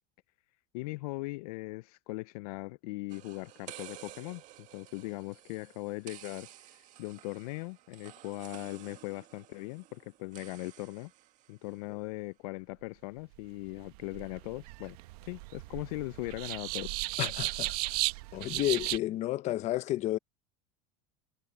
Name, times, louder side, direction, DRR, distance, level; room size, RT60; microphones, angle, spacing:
voice 1, 0.7-11.1 11.5-15.0 15.2-16.9 17.2-17.3, left 23 dB, 70° left, 0.4 m, -39 dB
sound 1, 3.1-11.8, right 14 dB, 40° right, 1.8 m, -52 dB
sound 2, 13.7-19.0, right 21 dB, 70° right, 1.1 m, -35 dB
voice 2, 17.2-18.0 18.3-20.2, left 14 dB, 35° left, 0.7 m, -31 dB
supercardioid pair, 150°, 20 cm